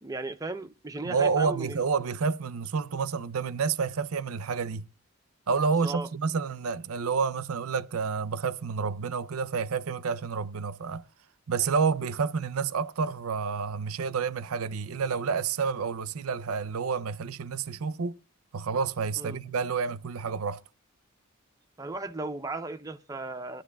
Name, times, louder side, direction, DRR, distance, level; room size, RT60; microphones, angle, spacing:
voice 1, 0.0-1.8 5.8-6.1 19.2-19.4 21.8-23.6, right 2 dB, 15° right, 0.6 m, -36 dB
voice 2, 1.0-4.9 5.5-11.0 11.5-18.2 18.5-20.6, right 5 dB, 80° right, 0.5 m, -29 dB
21.5 x 11.5 x 2.3 m
head